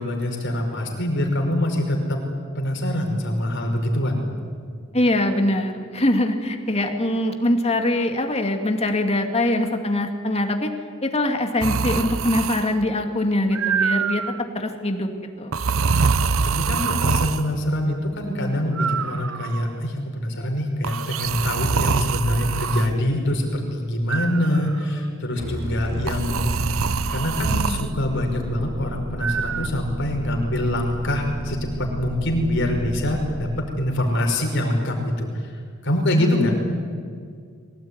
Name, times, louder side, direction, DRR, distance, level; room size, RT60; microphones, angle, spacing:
voice 1, 0.0-2.2 2.5-4.2 16.0-26.5 27.1-36.5, left 1 dB, 60° left, 1 dB, 5.3 m, -24 dB
voice 2, 4.9-10.7 11.0-14.2 14.5-15.1 15.4-15.6, left 1 dB, 30° left, 4 dB, 2.5 m, -23 dB
sound 1, 11.6-12.8 13.5-14.4 15.5-17.5 18.8-19.7 20.8-22.9 24.1-24.8 26.1-27.9 29.2-29.7, right 5 dB, 90° right, 0.8 m, -24 dB
sound 2, 25.4-33.4, right 1 dB, 35° right, 6.2 m, -32 dB
23.0 x 18.5 x 9.7 m, 2.1 s
head